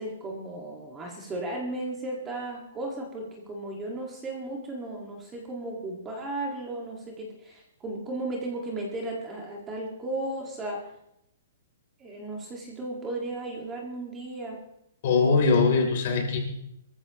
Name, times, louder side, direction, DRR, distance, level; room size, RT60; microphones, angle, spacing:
voice 1, 0.0-10.8 12.0-14.6, right 2 dB, 10° right, -1 dB, 1.8 m, -35 dB
voice 2, 15.0-16.4, left 4 dB, 40° left, 3 dB, 3.3 m, -21 dB
23.0 x 14.5 x 3.0 m, 0.79 s
hypercardioid pair, 175°, 0 cm